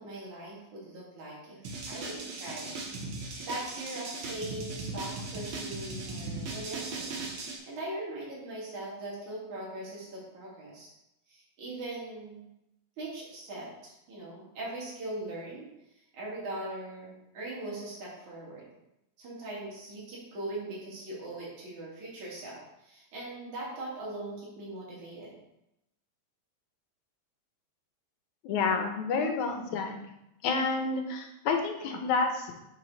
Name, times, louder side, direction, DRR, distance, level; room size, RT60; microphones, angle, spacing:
voice 1, 0.0-2.7 3.4-10.9 11.3-12.4 13.0-15.7 16.1-18.7 19.2-25.3, right 1 dB, 75° right, -5 dB, 4.1 m, -40 dB
sound 1, 1.6-7.6, right 3 dB, 55° right, 1.8 m, -38 dB
voice 2, 28.4-30.0 30.4-32.6, left 4 dB, 85° left, 4 dB, 2.4 m, -29 dB
9.1 x 5.9 x 4.1 m, 0.86 s
omnidirectional pair, 3.4 m